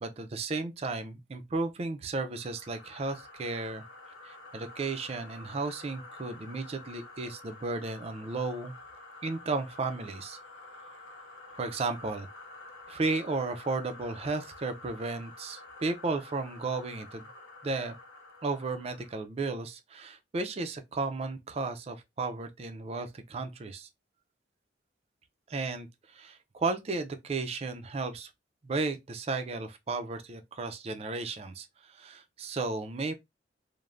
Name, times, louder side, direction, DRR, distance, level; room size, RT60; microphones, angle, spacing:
voice 1, 0.0-3.8 4.2-8.7 9.2-10.4 11.5-12.3 12.9-17.3 17.6-18.0 18.4-23.9 25.5-28.3 28.6-33.1, right 3 dB, 35° right, 0.4 m, -34 dB
sound 1, 2.2-19.3, left 2 dB, 90° left, 0.5 m, -49 dB
3.2 x 2.1 x 2.4 m
head